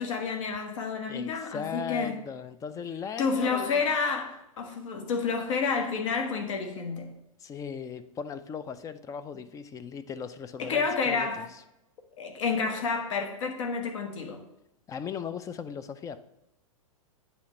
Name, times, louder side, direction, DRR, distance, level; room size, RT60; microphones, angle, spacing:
voice 1, 0.0-2.2 3.2-7.1 10.6-11.5 12.2-14.4, left 5 dB, 60° left, 4 dB, 1.4 m, -29 dB
voice 2, 1.1-3.8 7.4-11.6 14.9-16.2, left 7 dB, 20° left, 13 dB, 0.4 m, -38 dB
8.3 x 3.3 x 6.4 m, 0.86 s
figure-of-eight pair, 105°, 18 cm